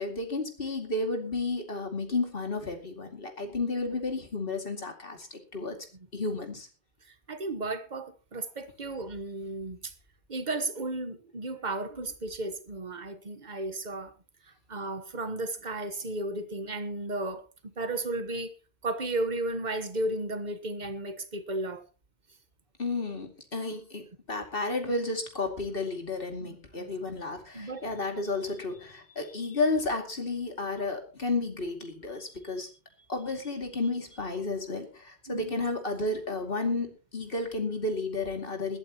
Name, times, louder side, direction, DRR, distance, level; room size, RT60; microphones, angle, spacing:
voice 1, 0.0-5.8 6.1-6.7 22.8-32.7 33.1-36.9 37.1-38.8, left 3 dB, 55° left, 4 dB, 2.7 m, -32 dB
voice 2, 7.3-9.9 10.3-14.1 14.7-17.4 17.8-18.5 18.8-21.8 26.4-26.9 27.5-28.0 35.3-35.5, right 2 dB, 40° right, 10 dB, 1.4 m, -34 dB
20.5 x 12.5 x 3.0 m, 0.33 s
omnidirectional pair, 1.1 m